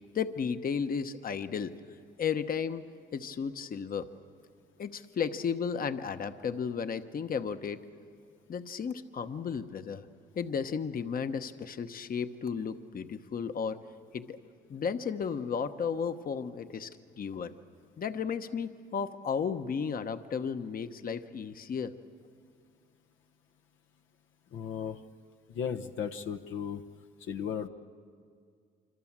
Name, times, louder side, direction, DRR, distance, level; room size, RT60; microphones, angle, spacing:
voice 1, 0.1-1.7 2.2-2.8 3.1-4.1 4.8-7.8 8.5-10.0 10.3-13.8 14.1-14.4 14.7-16.9 17.2-17.5 18.0-21.9, left 6 dB, 45° left, 9 dB, 1.1 m, -34 dB
voice 2, 24.5-25.0 25.5-26.8 27.2-27.7, left 7 dB, 80° left, 5 dB, 1.0 m, -35 dB
26.0 x 25.5 x 7.4 m, 2.2 s
cardioid pair, 90°, 20 cm